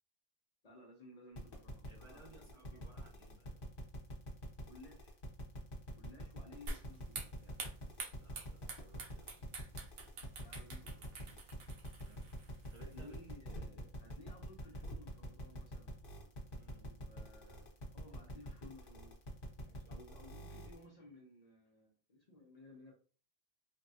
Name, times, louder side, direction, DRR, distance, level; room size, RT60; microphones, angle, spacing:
voice 1, 0.6-2.9 4.6-5.2 5.9-7.6 10.4-11.4 12.7-16.0 16.7-19.2 19.9-22.9, left 1 dB, 45° left, -1 dB, 0.7 m, -58 dB
sound 1, 1.3-20.8, left 1 dB, 60° left, 1.1 m, -47 dB
voice 2, 1.9-3.6 8.2-9.6 11.9-12.3 12.7-13.2 16.5-16.9 19.6-20.5, right 2 dB, 35° right, -3 dB, 0.7 m, -61 dB
sound 2, 6.7-13.2, right 3 dB, 75° right, 0.8 m, -48 dB
3.3 x 2.1 x 2.7 m, 0.39 s
omnidirectional pair, 1.0 m